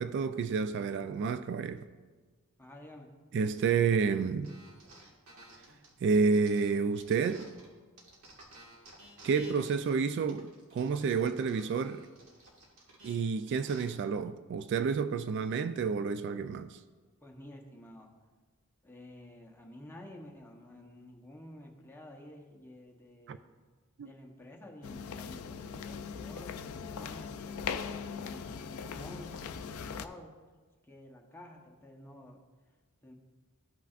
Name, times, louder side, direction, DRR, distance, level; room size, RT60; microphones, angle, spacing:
voice 1, 0.0-1.9 3.3-4.6 6.0-7.5 9.2-12.1 13.0-16.8 23.3-23.4 24.0-24.1, right 5 dB, 55° right, 0.3 m, -30 dB
voice 2, 2.6-3.1 17.2-18.1 18.8-23.5 24.0-30.3 30.9-32.4 33.0-33.1, left 1 dB, 10° left, 0.9 m, -51 dB
sound 1, 4.4-7.7 8.0-13.8, right 1 dB, 80° right, 1.7 m, -54 dB
sound 2, 24.8-30.1, left 6 dB, 85° left, 0.4 m, -40 dB
14.0 x 5.7 x 2.5 m
head